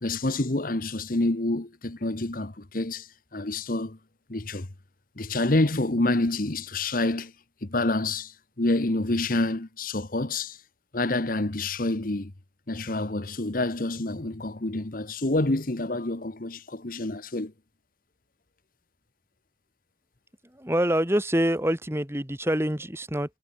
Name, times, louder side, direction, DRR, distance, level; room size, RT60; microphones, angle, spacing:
voice 1, 0.0-4.0 4.3-4.7 5.2-7.3 7.6-10.6 10.9-12.3 12.7-17.5, left 2 dB, 50° left, 1.3 m, -27 dB
voice 2, 20.5-23.4, equal, 15° right, 2.7 m, -26 dB
head